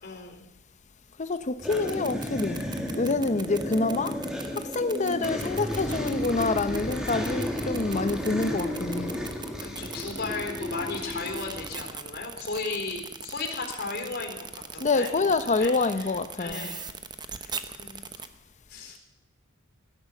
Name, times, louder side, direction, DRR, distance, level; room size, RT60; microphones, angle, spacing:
voice 1, 0.0-0.5 3.2-3.4 9.6-16.9 17.3-18.3 18.7-19.0, left 3 dB, 50° left, 4.0 m, -36 dB
voice 2, 1.2-2.6 3.0-4.2 4.6-9.2 14.8-16.7, left 3 dB, 35° left, 0.7 m, -27 dB
sound 1, 1.6-11.9, left 1 dB, 5° right, 1.9 m, -33 dB
sound 2, 1.6-18.3, right 6 dB, 20° right, 0.8 m, -39 dB
16.5 x 10.5 x 7.2 m
head